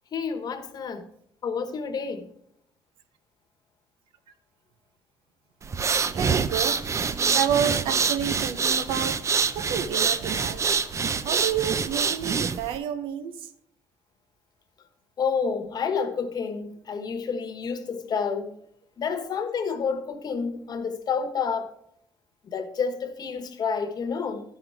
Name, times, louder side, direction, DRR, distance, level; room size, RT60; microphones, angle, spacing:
voice 1, 0.1-1.0 1.4-2.2 15.2-18.5 19.0-21.7 22.5-24.4, left 5 dB, 50° left, 1.2 m, -29 dB
sound 1, 5.6-12.8, right 5 dB, 35° right, 0.5 m, -26 dB
voice 2, 6.1-6.8 7.3-9.2 9.5-10.7 11.2-13.5, right 9 dB, 80° right, 0.7 m, -29 dB
12.0 x 5.7 x 4.7 m
cardioid pair, 85°, 9 cm